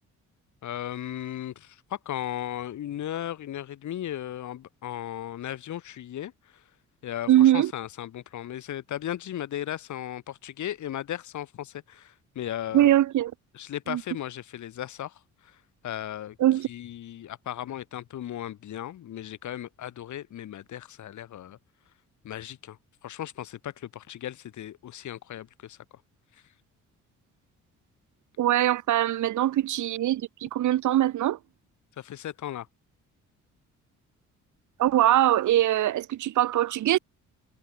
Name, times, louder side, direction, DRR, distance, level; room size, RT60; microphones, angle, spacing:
voice 1, 0.6-6.6 7.0-13.0 13.5-15.6 15.8-16.4 16.7-21.6 22.2-22.8 23.0-25.8 32.0-32.7, left 11 dB, 70° left, 6.9 m, -36 dB
voice 2, 7.3-7.7 12.7-13.3 13.9-14.0 16.4-16.7 28.4-31.4 34.8-37.0, right 13 dB, 75° right, 2.1 m, -22 dB
cardioid pair, 90°, 30 cm